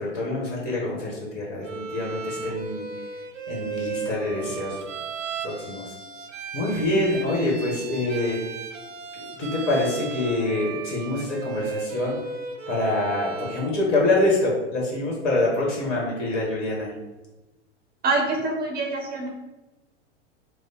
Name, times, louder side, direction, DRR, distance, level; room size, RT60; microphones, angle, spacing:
voice 1, 0.0-2.8 3.5-4.8 5.4-5.9 6.5-8.6 9.4-12.2 12.7-16.9, left 2 dB, 55° left, -3 dB, 1.4 m, -25 dB
Bowed string instrument, 1.6-13.8, right 5 dB, 85° right, 0.5 m, -35 dB
voice 2, 18.0-19.3, right 3 dB, 25° right, 1 dB, 0.6 m, -25 dB
3.3 x 2.2 x 4.2 m, 1.1 s
figure-of-eight pair, 90°, 36 cm